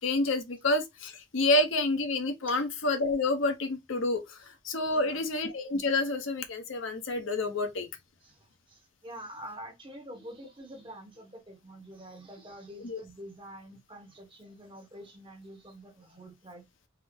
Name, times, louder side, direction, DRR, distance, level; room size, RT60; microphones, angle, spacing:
voice 1, 0.0-7.9 12.8-13.0, left 2 dB, 70° left, 0.7 m, -28 dB
voice 2, 4.9-5.3 8.2-16.6, right 1 dB, 25° right, 1.0 m, -47 dB
3.5 x 2.0 x 3.5 m
head